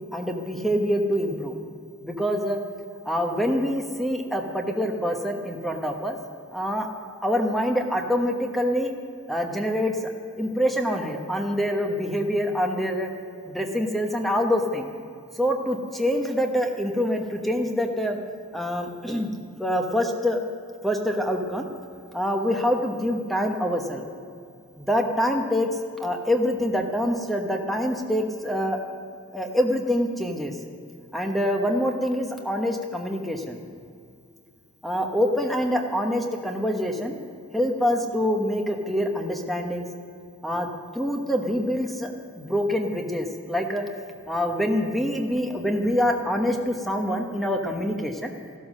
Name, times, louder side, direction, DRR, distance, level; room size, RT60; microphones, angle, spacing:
voice 1, 0.1-1.6 2.0-2.6 3.0-6.2 6.5-6.9 7.2-8.9 9.3-9.9 10.4-13.1 13.5-14.9 15.4-18.2 18.5-19.3 19.6-20.4 20.8-21.7 22.1-24.0 24.8-25.7 26.0-28.8 29.3-30.6 31.1-33.6 34.8-37.2 37.5-39.9 40.4-40.7 40.9-42.1 42.4-43.8 44.3-48.3, equal, ahead, 3 dB, 1.1 m, -25 dB
14.0 x 12.5 x 6.4 m, 2.4 s
head